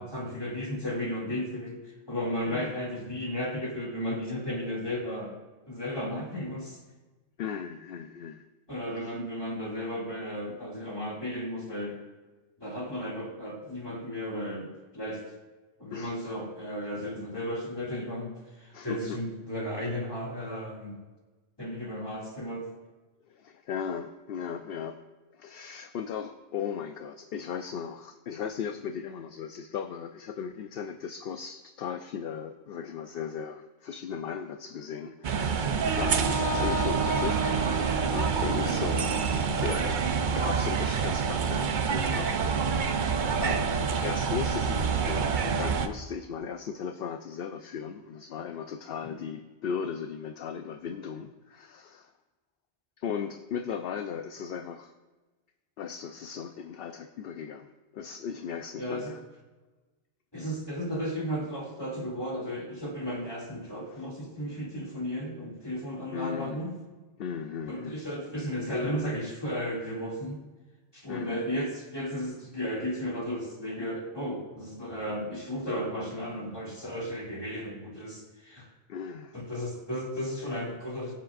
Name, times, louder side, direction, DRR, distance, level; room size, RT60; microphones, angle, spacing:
voice 1, 0.0-5.3 5.7-6.8 8.7-12.0 12.6-15.2 15.8-21.0 21.6-22.7 38.6-38.8 49.0-49.2 58.8-59.1 60.3-66.8 67.7-70.4 70.9-78.7 79.3-81.1, equal, 20° left, -3 dB, 2.5 m, -34 dB
voice 2, 2.5-2.8 7.4-8.4 9.0-9.1 15.9-16.1 18.7-19.2 23.3-25.0 25.3-37.4 37.8-39.3 39.6-42.9 43.4-52.1 53.0-54.9 55.8-59.2 63.8-64.1 66.1-66.7 67.2-68.0 71.1-71.4 78.9-79.4, left 7 dB, 60° left, 7 dB, 0.7 m, -37 dB
sound 1, 35.2-45.9, right 6 dB, 50° right, 0.7 m, -27 dB
Wind instrument woodwind instrument, 35.9-39.9, right 2 dB, 15° right, 0.9 m, -33 dB
22.0 x 7.3 x 2.5 m, 1.2 s
omnidirectional pair, 1.2 m